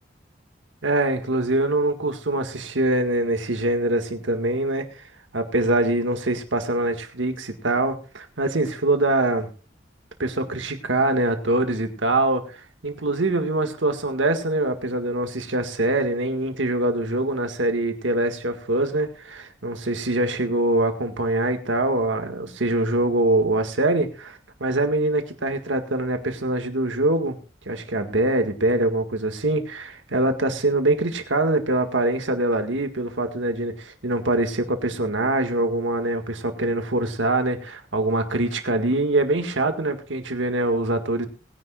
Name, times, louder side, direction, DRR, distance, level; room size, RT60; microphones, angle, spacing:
voice 1, 0.8-5.1 5.3-9.5 10.2-27.4 27.7-41.3, right 2 dB, 90° right, 6 dB, 1.8 m, -24 dB
20.5 x 10.0 x 2.4 m, 0.34 s
head